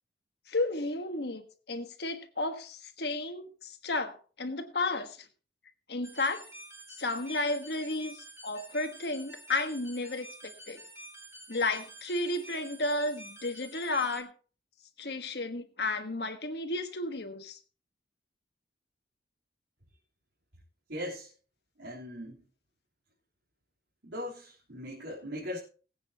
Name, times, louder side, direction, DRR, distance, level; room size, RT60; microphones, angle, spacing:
voice 1, 0.5-5.3 5.9-6.4 7.0-10.8 11.5-14.3 15.0-17.6, left 2 dB, 65° left, 7 dB, 1.5 m, -33 dB
sound 1, 6.0-14.2, right 1 dB, 15° right, 3.7 m, -49 dB
voice 2, 20.9-21.3 21.8-22.4 24.0-25.6, left 1 dB, 80° right, -5 dB, 3.7 m, -39 dB
21.0 x 8.8 x 2.9 m, 0.37 s
head